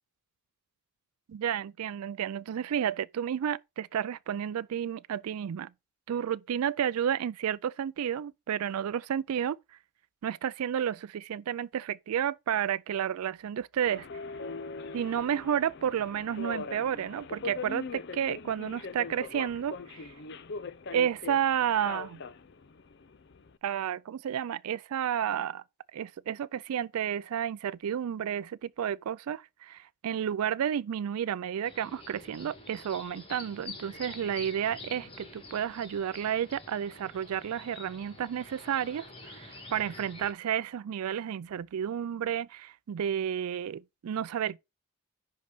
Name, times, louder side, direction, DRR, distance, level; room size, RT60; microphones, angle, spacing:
voice 1, 1.3-5.7 6.1-9.6 10.2-14.1 14.9-20.1 20.9-22.2 23.6-25.6 25.9-44.6, right 9 dB, 85° right, 0.4 m, -31 dB
Subway metro underground, 13.9-23.6, left 4 dB, 50° left, 0.5 m, -41 dB
sound 1, 31.6-40.3, left 2 dB, 25° left, 1.7 m, -47 dB
10.5 x 3.9 x 4.9 m
head